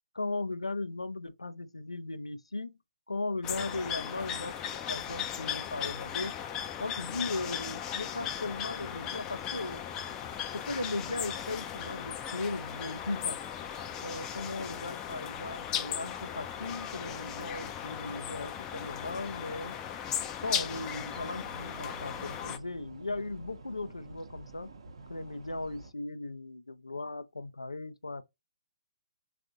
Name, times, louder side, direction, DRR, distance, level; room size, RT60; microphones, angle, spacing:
voice 1, 0.1-2.8 3.1-4.6 4.9-6.3 6.8-9.8 10.5-13.4 14.0-19.8 20.4-24.7 25.1-28.2, left 2 dB, 90° left, 0.4 m, -37 dB
sound 1, 3.4-22.6, left 9 dB, 20° left, 0.4 m, -37 dB
sound 2, 20.6-25.9, right 3 dB, 60° right, 0.7 m, -49 dB
3.5 x 2.5 x 2.5 m
figure-of-eight pair, 135°, 3 cm